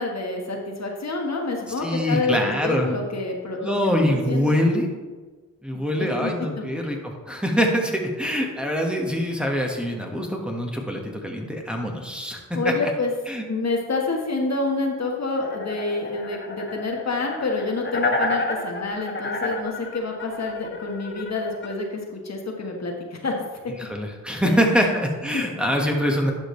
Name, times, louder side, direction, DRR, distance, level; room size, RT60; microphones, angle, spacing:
voice 1, 0.0-3.8 4.0-4.6 5.7-6.6 12.5-13.1 13.5-23.3 25.3-25.4, left 3 dB, 55° left, 1 dB, 1.4 m, -28 dB
voice 2, 1.8-2.9 3.6-4.9 5.6-12.9 13.3-13.4 23.8-26.3, equal, 5° right, 0 dB, 1.5 m, -24 dB
sound 1, 15.4-21.7, left 2 dB, 35° left, 1.3 m, -30 dB
11.5 x 5.1 x 3.2 m, 1.3 s
cardioid pair, 50°, 33 cm